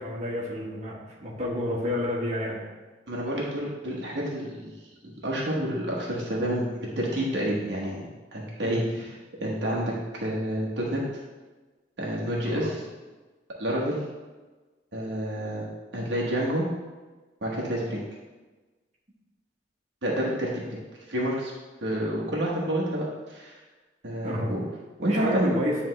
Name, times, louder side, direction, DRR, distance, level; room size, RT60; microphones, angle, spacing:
voice 1, 0.0-2.6 8.6-9.0 12.4-12.7 20.4-20.5 24.2-24.5 25.1-25.8, left 1 dB, 40° right, -5 dB, 1.4 m, -30 dB
voice 2, 3.1-4.7 5.0-8.0 8.3-9.1 9.4-9.9 10.2-11.0 12.0-12.8 13.6-14.0 14.9-15.7 15.9-16.6 17.4-18.0 20.0-20.6 21.1-21.5 21.8-23.6 24.0-24.6 25.0-25.5, right 1 dB, 75° right, -4 dB, 1.2 m, -29 dB
9.5 x 3.5 x 3.2 m, 1.3 s
head